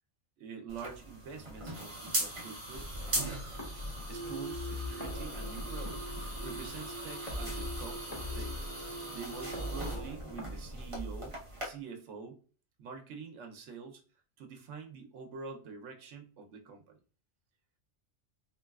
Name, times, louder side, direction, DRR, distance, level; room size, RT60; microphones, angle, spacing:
voice 1, 0.4-2.9 4.1-6.1 6.4-8.7 9.1-11.4 11.6-12.4 12.8-14.0 14.4-17.0, right 5 dB, 75° right, 3 dB, 1.0 m, -46 dB
sound 1, 0.7-11.7, right 1 dB, 30° right, 0.7 m, -40 dB
sound 2, 2.7-11.7, left 1 dB, 35° left, 0.9 m, -42 dB
Singing, 4.1-10.0, right 2 dB, 75° left, 0.9 m, -45 dB
3.0 x 2.8 x 2.3 m, 0.39 s
omnidirectional pair, 1.2 m